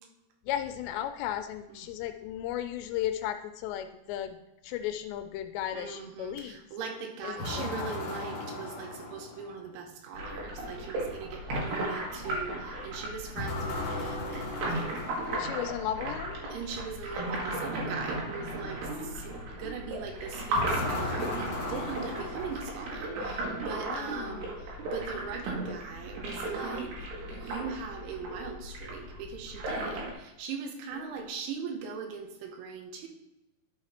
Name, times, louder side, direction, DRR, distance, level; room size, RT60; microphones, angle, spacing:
voice 1, 0.5-4.4 4.6-6.6 7.2-8.0 15.3-16.4 23.8-24.5, left 11 dB, 85° left, 8 dB, 2.6 m, -35 dB
voice 2, 5.7-14.9 16.5-26.9 27.3-33.1, right 5 dB, 85° right, 4 dB, 3.5 m, -40 dB
sound 1, 7.4-9.7 13.4-15.9 20.5-23.2, left 2 dB, 50° left, 2.4 m, -37 dB
sound 2, 10.1-30.1, right 1 dB, 70° right, 3.6 m, -36 dB
11.0 x 5.8 x 4.3 m, 0.94 s
omnidirectional pair, 5.2 m